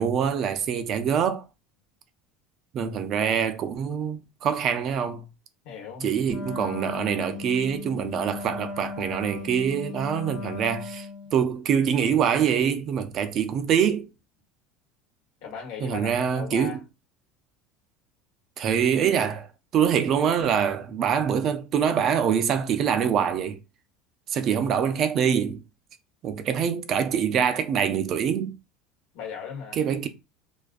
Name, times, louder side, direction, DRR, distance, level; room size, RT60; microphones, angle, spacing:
voice 1, 0.0-1.4 2.7-5.2 6.0-11.1 11.3-14.1 15.8-16.8 18.6-19.5 19.7-23.6 24.3-25.6 26.2-28.5 29.8-30.1, right 8 dB, 45° right, 0.4 m, -24 dB
voice 2, 5.6-6.1 11.2-11.3 15.4-16.8 29.1-29.8, left 7 dB, 70° left, 1.1 m, -38 dB
Wind instrument woodwind instrument, 6.3-11.4, left 4 dB, 50° left, 0.6 m, -37 dB
2.4 x 2.2 x 2.4 m
supercardioid pair, 125°, 0 cm